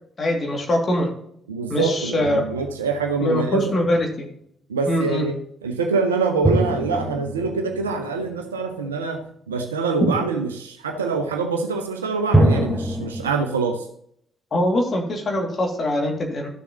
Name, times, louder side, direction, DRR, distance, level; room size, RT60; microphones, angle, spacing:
voice 1, 0.2-1.1 1.7-2.4 3.2-4.3 4.9-5.2 10.0-10.1 14.5-16.5, left 1 dB, 35° left, 1 dB, 2.4 m, -22 dB
voice 2, 1.5-3.6 4.7-13.9, right 4 dB, 80° right, 4 dB, 0.9 m, -25 dB
sound 1, 2.2-3.6 6.4-9.0 12.3-13.3, right 1 dB, ahead, 1.6 m, -24 dB
13.0 x 7.1 x 3.0 m, 0.70 s
figure-of-eight pair, 45°, 0 cm